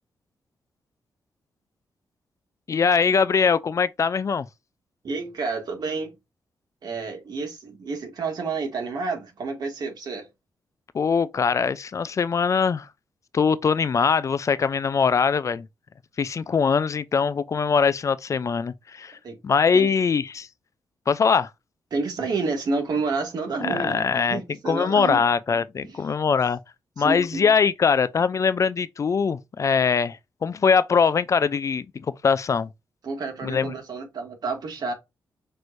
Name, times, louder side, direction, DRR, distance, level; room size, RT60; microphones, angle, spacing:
voice 1, 2.7-4.5 10.9-12.9 13.3-15.7 16.2-19.2 19.4-20.5 21.1-21.5 23.6-26.6 27.0-31.9 32.2-32.7 33.4-33.7, left 5 dB, 45° left, 0.4 m, -22 dB
voice 2, 5.0-6.1 6.8-10.3 19.2-19.4 19.7-20.0 21.9-25.2 25.8-26.0 27.0-27.5 33.0-34.9, right 4 dB, 65° right, 2.0 m, -29 dB
6.1 x 3.2 x 2.6 m
cardioid pair, 80°, 7 cm